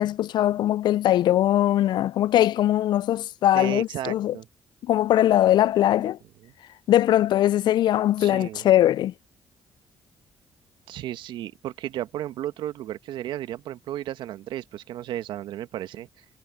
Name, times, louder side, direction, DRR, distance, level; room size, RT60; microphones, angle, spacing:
voice 1, 0.0-4.3 4.9-6.2 6.9-9.1, left 12 dB, 65° left, 0.3 m, -21 dB
voice 2, 3.5-4.5 6.0-6.1 6.4-6.5 8.2-8.7 10.9-16.2, right 13 dB, 75° right, 1.5 m, -34 dB
hypercardioid pair, 45°, 8 cm